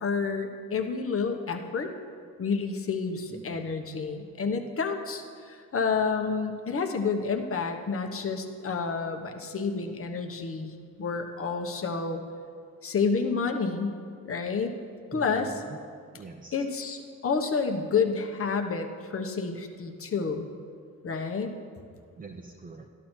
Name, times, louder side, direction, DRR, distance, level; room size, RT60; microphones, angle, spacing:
voice 1, 0.0-1.9 2.4-12.2 12.8-14.0 14.2-14.8 15.1-15.6 16.5-20.5 21.0-21.6, left 5 dB, 40° left, 5 dB, 1.2 m, -29 dB
voice 2, 3.3-3.7 15.1-15.8 16.1-16.6 22.2-22.9, right 3 dB, 25° right, 1 dB, 0.8 m, -44 dB
13.5 x 11.5 x 4.5 m, 2.1 s
cardioid pair, 105°, 34 cm